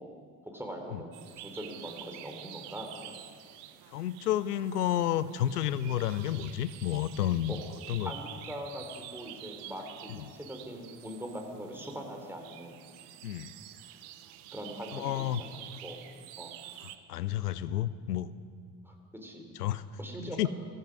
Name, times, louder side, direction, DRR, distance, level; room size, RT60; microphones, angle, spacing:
voice 1, 0.0-3.3 7.5-7.6 8.0-12.8 14.5-16.0 16.4-16.5 18.8-18.9 19.2-19.5 20.0-20.4, equal, 5° right, 2 dB, 3.5 m, -42 dB
sound 1, 1.1-17.0, right 12 dB, 65° right, 0.9 m, -48 dB
voice 2, 3.9-7.6 7.9-8.1 10.1-10.3 13.2-13.5 14.9-15.4 17.1-18.3 19.5-19.8 20.2-20.5, left 11 dB, 85° left, 16 dB, 0.6 m, -30 dB
15.0 x 13.5 x 6.2 m, 2.1 s
figure-of-eight pair, 50°, 45 cm